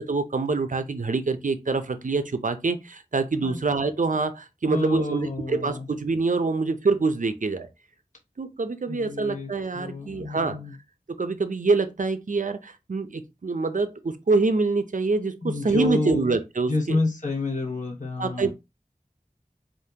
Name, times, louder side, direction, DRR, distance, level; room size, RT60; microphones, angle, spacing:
voice 1, 0.0-7.7 8.4-10.6 11.1-17.0 18.2-18.5, right 3 dB, 65° right, 0.6 m, -25 dB
voice 2, 4.7-5.9 8.9-10.8 15.4-16.3 16.7-18.5, left 3 dB, 60° left, 1.2 m, -29 dB
5.1 x 2.6 x 2.8 m
wide cardioid pair, 45°, 14 cm